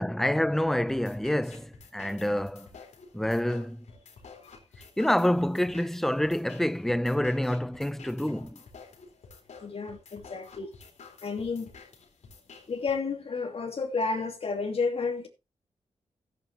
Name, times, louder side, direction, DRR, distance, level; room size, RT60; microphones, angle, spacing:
voice 1, 0.0-2.7 3.1-3.8 5.0-8.6, left 1 dB, 5° left, 0.5 m, -27 dB
sound 1, 0.9-12.9, left 4 dB, 90° left, 3.9 m, -51 dB
voice 2, 9.6-10.7 11.2-11.7 12.7-15.3, left 4 dB, 55° left, 2.6 m, -31 dB
15.5 x 9.1 x 3.0 m
wide cardioid pair, 110°, 12 cm